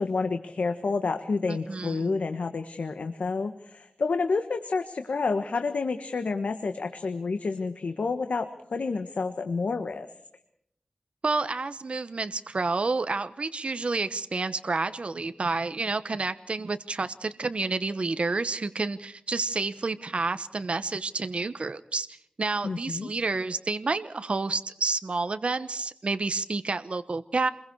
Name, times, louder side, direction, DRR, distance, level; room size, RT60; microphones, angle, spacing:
voice 1, 0.0-10.1 22.6-23.1, left 4 dB, 85° left, 8 dB, 1.4 m, -29 dB
voice 2, 1.5-2.1 11.2-27.5, right 3 dB, 55° right, 11 dB, 1.1 m, -29 dB
28.5 x 22.0 x 4.7 m, 0.72 s
wide cardioid pair, 65°, 2 cm